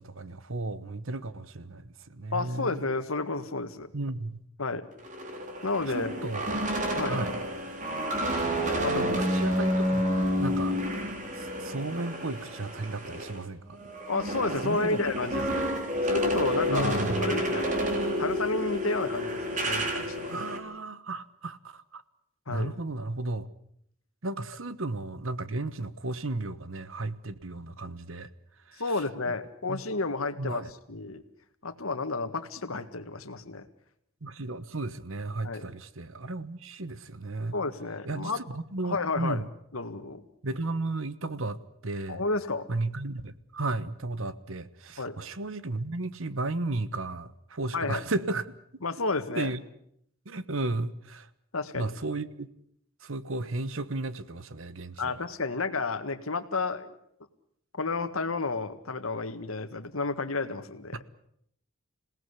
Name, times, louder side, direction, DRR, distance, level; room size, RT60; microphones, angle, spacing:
voice 1, 0.0-2.9 3.9-4.4 5.9-6.6 7.1-7.3 8.9-10.8 11.4-13.8 14.6-15.0 16.7-17.2 20.3-22.0 22.5-23.5 24.2-28.3 28.7-28.8 29.3-29.4 29.7-29.8 30.4-30.7 34.2-37.5 38.0-39.5 40.4-42.2 42.7-48.5 49.3-49.6 50.2-51.3 51.7-52.5 53.0-55.2 60.9-61.0, right 2 dB, 65° right, 15 dB, 1.2 m, -34 dB
voice 2, 2.3-3.9 4.6-4.9 5.6-6.3 6.9-7.2 8.8-9.3 14.1-15.7 16.1-17.7 18.2-20.3 22.5-22.8 28.8-31.2 31.6-33.7 35.4-35.6 37.5-38.4 38.8-39.4 39.7-40.2 42.1-42.7 45.0-45.2 47.7-48.0 48.8-49.6 51.5-51.9 55.0-57.0 57.7-61.0, left 3 dB, 80° left, 9 dB, 1.8 m, -31 dB
sound 1, 5.0-13.4 13.7-20.6, equal, 35° right, 3.6 m, -29 dB
27.0 x 18.0 x 8.3 m, 0.72 s
head